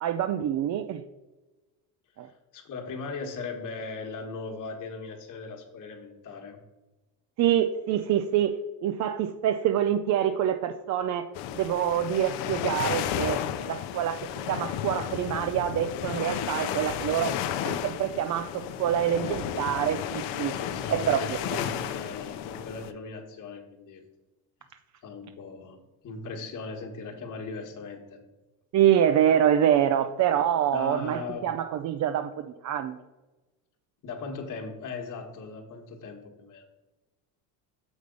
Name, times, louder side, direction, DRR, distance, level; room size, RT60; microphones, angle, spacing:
voice 1, 0.0-1.0 2.2-2.3 7.4-11.3 11.5-13.4 13.7-14.2 14.5-17.3 17.6-20.5 20.9-21.6 28.7-33.0, right 10 dB, 40° right, 7 dB, 0.4 m, -26 dB
voice 2, 2.2-6.6 20.4-24.0 25.0-28.2 30.7-31.5 34.0-36.6, left 4 dB, 45° left, 2 dB, 1.4 m, -39 dB
sound 1, 11.3-22.9, left 10 dB, 65° left, 0.7 m, -33 dB
6.5 x 5.1 x 5.1 m, 1.1 s
supercardioid pair, 115°, 46 cm